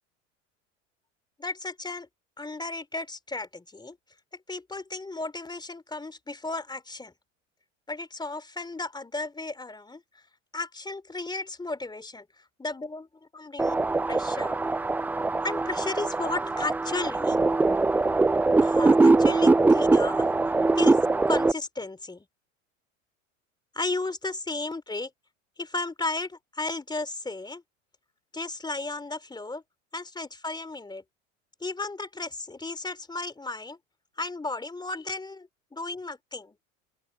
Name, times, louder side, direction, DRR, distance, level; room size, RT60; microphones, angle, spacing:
voice 1, 1.4-2.1 2.4-4.0 4.5-7.1 7.9-10.0 10.5-12.2 12.6-13.1 13.3-13.8 14.1-14.6 15.4-17.4 18.6-20.3 20.8-21.0 21.3-22.2 23.7-25.1 25.6-27.6 28.3-29.6 29.9-31.0 31.6-33.8 34.2-36.5, left 3 dB, 10° left, 3.2 m, -34 dB
sound 1, 13.6-21.5, right 3 dB, 5° right, 0.3 m, -22 dB
open air
hypercardioid pair, 80°, 39 cm